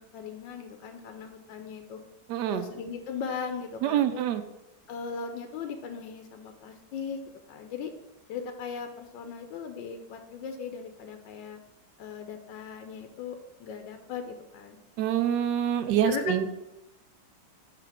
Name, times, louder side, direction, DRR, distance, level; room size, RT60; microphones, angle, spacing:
voice 1, 0.0-2.0 2.5-4.2 4.9-7.2 7.5-7.9 8.3-11.6 12.0-14.8 16.0-16.5, left 6 dB, 85° left, 6 dB, 1.3 m, -38 dB
voice 2, 2.3-2.6 3.8-4.4 15.0-16.4, right 10 dB, 75° right, 10 dB, 1.1 m, -26 dB
5.7 x 3.5 x 5.9 m, 0.94 s
omnidirectional pair, 2.0 m